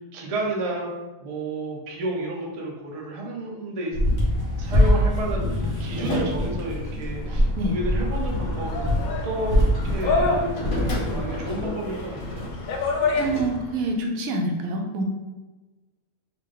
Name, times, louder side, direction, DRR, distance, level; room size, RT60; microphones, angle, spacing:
voice 1, 0.1-0.9 1.2-4.0 4.6-9.6 9.8-12.5, right 1 dB, 45° right, -1 dB, 0.5 m, -31 dB
sound 1, 3.9-11.7, equal, 20° right, 0.9 m, -24 dB
sound 2, 4.2-13.5, left 1 dB, 60° left, 1.2 m, -35 dB
sound 3, 7.4-13.8, left 3 dB, 85° left, 1.1 m, -29 dB
voice 2, 13.2-15.0, right 1 dB, 80° right, 2 dB, 1.0 m, -26 dB
3.5 x 2.4 x 3.7 m, 1.2 s
omnidirectional pair, 1.5 m